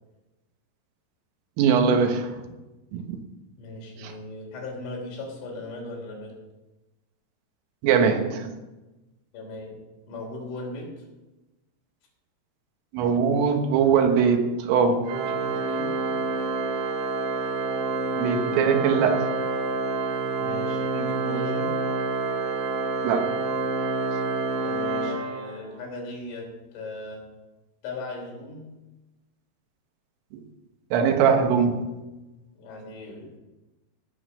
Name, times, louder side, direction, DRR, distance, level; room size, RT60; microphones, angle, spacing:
voice 1, 1.6-2.4 2.9-3.2 4.0-4.1 7.8-8.5 12.9-15.1 18.2-19.3 23.0-23.3 30.3-30.4 30.9-32.0, right 6 dB, 85° right, 5 dB, 3.9 m, -21 dB
voice 2, 3.6-6.4 9.3-9.8 10.1-11.1 15.2-15.9 20.4-21.8 24.6-27.3 27.8-28.7 32.6-33.4, left 2 dB, 75° left, -1 dB, 6.0 m, -38 dB
Organ, 15.0-25.9, right 3 dB, 65° right, 3.0 m, -28 dB
17.0 x 7.4 x 6.3 m, 1.1 s
omnidirectional pair, 5.7 m